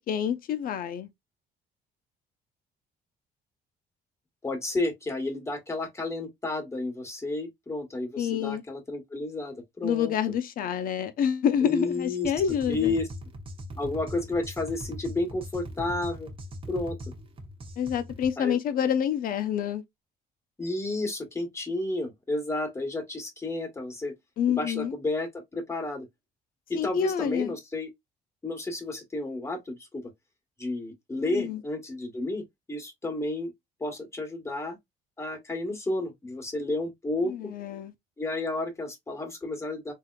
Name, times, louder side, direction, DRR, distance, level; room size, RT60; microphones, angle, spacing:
voice 1, 0.1-1.1 8.2-8.6 9.8-13.0 17.8-19.8 24.4-24.9 26.7-27.5 31.2-31.6 37.2-37.9, left 8 dB, 60° left, 0.7 m, -27 dB
voice 2, 4.4-10.1 11.6-12.3 12.7-13.1 13.8-16.3 16.7-17.0 18.4-18.6 20.6-24.1 24.5-26.1 26.7-27.9 28.4-30.1 30.6-32.4 32.7-33.5 33.8-34.8 35.2-37.5 38.2-39.9, left 2 dB, 15° left, 1.4 m, -31 dB
sound 1, 12.2-18.3, equal, 30° right, 1.0 m, -40 dB
3.6 x 2.8 x 2.3 m
cardioid pair, 110°, 17 cm